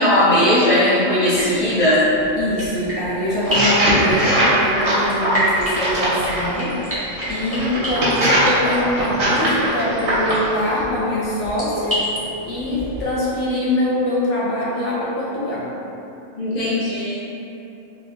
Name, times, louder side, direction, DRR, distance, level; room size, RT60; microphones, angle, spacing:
voice 1, 0.0-2.0 16.4-17.2, left 1 dB, 45° left, -11 dB, 0.6 m, -17 dB
sound 1, 1.3-13.0, equal, 10° right, 0.9 m, -30 dB
voice 2, 2.3-6.8 7.3-12.1 12.4-15.7, left 1 dB, 70° left, -7 dB, 1.1 m, -23 dB
sound 2, 3.4-6.5 7.2-10.5, right 1 dB, 65° right, 1.2 m, -20 dB
3.8 x 2.9 x 2.5 m, 2.8 s
omnidirectional pair, 1.3 m